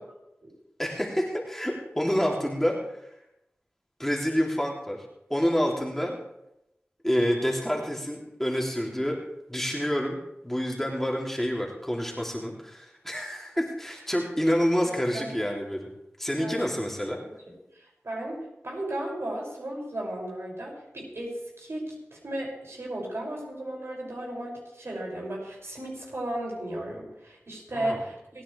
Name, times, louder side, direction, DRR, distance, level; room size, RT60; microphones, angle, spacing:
voice 1, 0.8-3.1 4.0-5.0 5.3-6.1 7.0-9.2 9.5-10.2 10.4-15.9 16.2-17.2 27.7-28.0, equal, 5° left, -2 dB, 3.1 m, -28 dB
voice 2, 17.7-28.4, right 1 dB, 65° right, -2 dB, 6.7 m, -35 dB
29.5 x 10.0 x 3.5 m, 0.85 s
wide cardioid pair, 45°, 5 cm